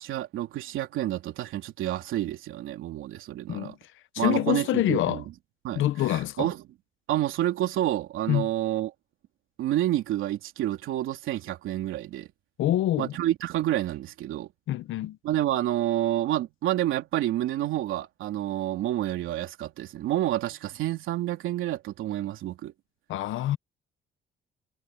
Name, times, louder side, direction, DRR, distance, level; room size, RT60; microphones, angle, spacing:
voice 1, 0.0-3.8 4.2-5.3 5.6-6.6 7.1-8.9 9.6-12.3 13.0-14.5 15.2-22.7, right 13 dB, 90° right, 3.3 m, -29 dB
voice 2, 4.1-5.2 5.7-6.5 8.3-8.5 12.6-13.1 14.7-15.2 23.1-23.6, left 14 dB, 80° left, 1.0 m, -26 dB
cardioid pair, 90°, 20 cm